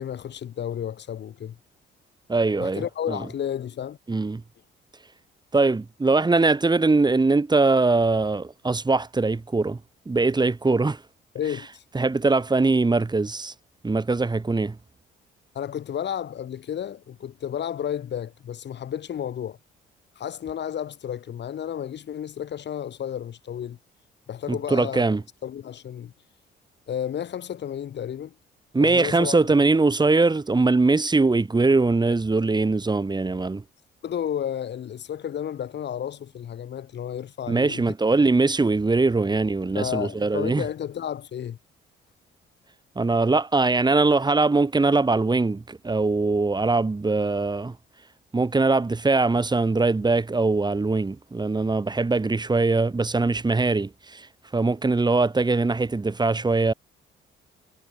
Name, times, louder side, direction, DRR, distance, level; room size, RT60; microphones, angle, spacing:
voice 1, 0.0-1.6 2.6-4.0 11.3-11.8 15.5-19.6 20.2-23.8 24.3-25.2 25.4-26.1 26.9-28.3 28.8-29.4 34.0-37.8 39.7-41.6, left 9 dB, 60° left, 4.7 m, -32 dB
voice 2, 2.3-2.8 3.1-3.2 4.1-4.4 5.5-9.8 10.1-11.0 11.9-13.5 13.8-14.8 24.5-25.2 28.7-33.6 37.5-40.6 42.9-47.7 48.3-54.3 54.5-56.7, right 3 dB, 20° right, 3.1 m, -22 dB
cardioid pair, 90°, 20 cm